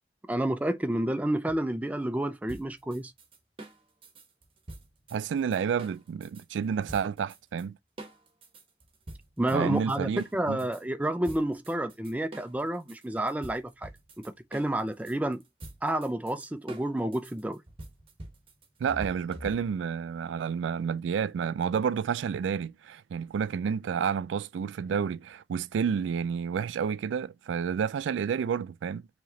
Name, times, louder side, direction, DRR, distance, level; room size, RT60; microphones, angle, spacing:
voice 1, 0.3-3.1 9.4-13.9 14.2-15.4 15.8-17.6, right 1 dB, 10° right, 0.3 m, -30 dB
sound 1, 2.5-6.4 6.9-7.6 8.0-10.8 11.2-19.9, right 1 dB, 30° right, 0.9 m, -46 dB
voice 2, 5.1-7.8 9.5-10.6 18.8-29.1, right 7 dB, 90° right, 0.3 m, -30 dB
4.8 x 3.0 x 2.7 m
head